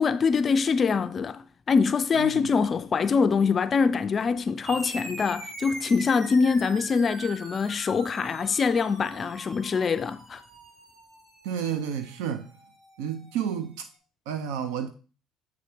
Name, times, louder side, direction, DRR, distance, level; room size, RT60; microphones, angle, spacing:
voice 1, 0.0-10.4, left 5 dB, 35° left, 0.3 m, -24 dB
voice 2, 2.2-2.5 11.4-12.5 13.0-13.9 14.3-14.9, right 8 dB, 85° right, 0.6 m, -31 dB
sound 1, 4.7-13.5, right 1 dB, 55° right, 2.9 m, -43 dB
8.0 x 3.5 x 4.9 m
cardioid pair, 110°, 0 cm